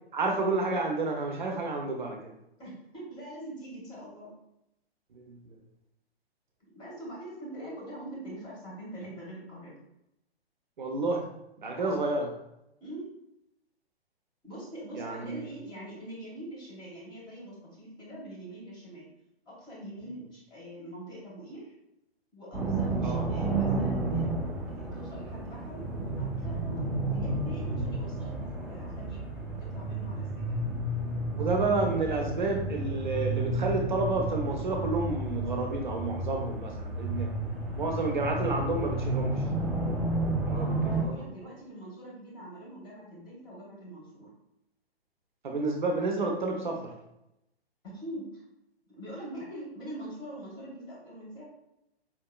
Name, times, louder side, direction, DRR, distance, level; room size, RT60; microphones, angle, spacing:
voice 1, 0.1-2.3 5.1-5.6 10.8-11.3 11.6-12.3 14.9-15.4 23.0-23.3 31.3-37.3 37.7-39.4 40.5-40.7 41.0-41.2 45.4-46.9, right 3 dB, 50° right, 2 dB, 0.6 m, -30 dB
voice 2, 2.6-4.3 6.7-9.7 11.7-12.1 12.8-13.2 14.4-19.1 19.4-21.7 22.3-24.3 24.7-26.9 27.1-30.6 40.5-44.3 47.8-48.4 48.9-51.4, right 1 dB, 15° left, -5 dB, 1.3 m, -43 dB
sound 1, 22.5-41.0, right 2 dB, 5° right, 0.6 m, -31 dB
4.5 x 3.5 x 2.2 m, 0.85 s
figure-of-eight pair, 125°, 32 cm